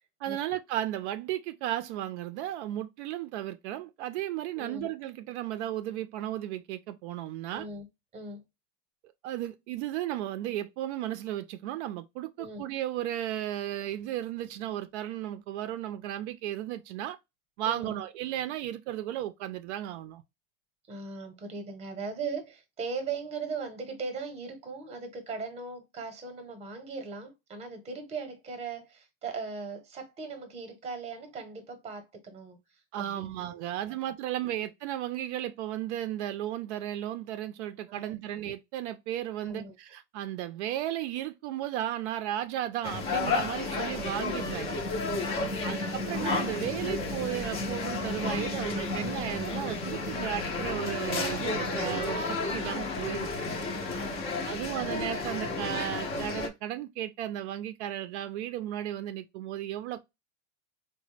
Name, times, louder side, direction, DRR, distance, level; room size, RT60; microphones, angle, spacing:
voice 1, 0.2-7.7 9.2-17.2 17.6-20.2 32.9-44.8 45.6-53.4 54.4-60.0, right 12 dB, 70° right, 0.5 m, -34 dB
voice 2, 4.6-4.9 7.5-7.9 8.1-8.4 12.4-12.6 17.6-18.0 20.9-33.3 33.6-33.8 34.3-34.4 37.9-38.2 39.4-39.7 43.6-43.8 45.4-45.8 49.9-50.3 53.7-54.7, right 4 dB, 15° right, 0.8 m, -39 dB
sound 1, 42.8-56.5, left 3 dB, 15° left, 0.4 m, -32 dB
4.0 x 2.1 x 3.1 m
supercardioid pair, 165°, 36 cm